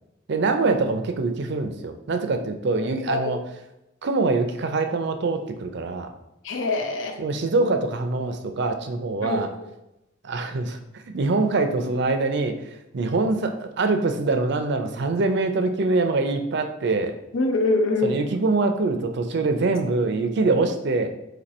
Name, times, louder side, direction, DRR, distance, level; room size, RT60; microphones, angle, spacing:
voice 1, 0.3-3.4 4.0-6.1 7.2-9.5 10.2-12.5 12.9-17.1 18.0-21.1, right 3 dB, 60° right, 7 dB, 0.5 m, -24 dB
voice 2, 6.4-7.2 9.2-9.4 17.3-18.2, left 2 dB, 75° left, 4 dB, 0.6 m, -24 dB
4.2 x 2.8 x 4.1 m, 0.91 s
head